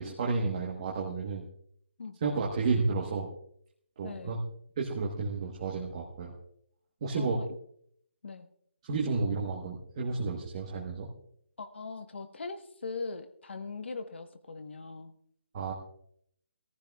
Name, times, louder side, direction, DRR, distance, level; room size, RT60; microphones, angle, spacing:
voice 1, 0.0-1.5 2.2-3.3 4.0-4.4 4.8-6.3 7.0-7.4 8.8-11.1 15.5-15.7, right 4 dB, 30° right, -3 dB, 1.2 m, -31 dB
voice 2, 4.0-4.4 7.1-7.5 8.2-8.5 11.6-15.1, left 4 dB, 75° left, 9 dB, 1.3 m, -40 dB
20.5 x 14.5 x 2.4 m, 0.66 s
hypercardioid pair, 175°, 6 cm